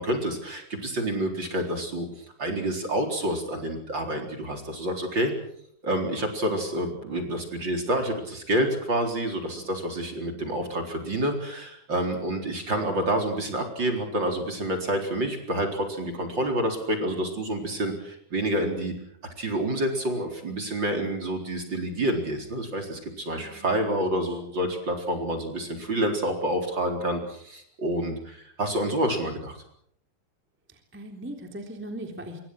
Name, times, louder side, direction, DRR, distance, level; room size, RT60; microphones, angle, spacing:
voice 1, 0.0-5.3 5.8-18.9 19.4-29.6, right 1 dB, 30° right, 4 dB, 4.5 m, -28 dB
voice 2, 9.4-10.4 23.4-23.9 30.7-32.4, right 1 dB, 5° right, 4 dB, 2.9 m, -41 dB
27.0 x 24.5 x 6.4 m, 0.68 s
omnidirectional pair, 4.3 m